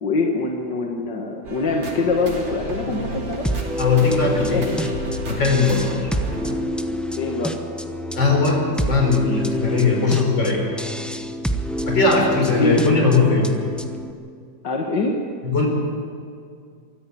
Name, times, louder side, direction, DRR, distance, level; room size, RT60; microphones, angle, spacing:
voice 1, 0.0-3.4 3.8-3.9 4.4-4.9 7.2-7.5 12.4-12.8 14.6-15.1, left 3 dB, 70° left, 1 dB, 2.2 m, -24 dB
sound 1, 1.4-6.5, right 1 dB, 90° right, 3.6 m, -32 dB
sound 2, 3.4-14.1, equal, ahead, 0.4 m, -27 dB
voice 2, 3.8-4.7 5.3-6.1 8.2-8.6 8.9-10.6 11.9-13.5 15.4-15.7, left 4 dB, 85° left, 0 dB, 5.4 m, -19 dB
24.0 x 14.0 x 8.5 m, 2.3 s
omnidirectional pair, 2.0 m